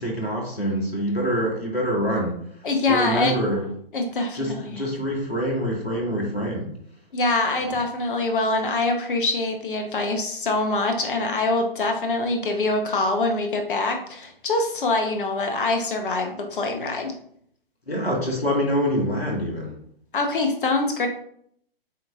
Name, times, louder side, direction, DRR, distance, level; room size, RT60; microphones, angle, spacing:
voice 1, 0.0-2.4 2.9-3.7 4.3-6.7 17.9-19.7, equal, 85° left, 0 dB, 1.4 m, -25 dB
voice 2, 2.6-3.3 3.9-4.8 7.1-17.1 20.1-21.1, left 2 dB, 60° left, 4 dB, 0.9 m, -24 dB
7.5 x 2.8 x 2.3 m, 0.66 s
figure-of-eight pair, 130°, 30 cm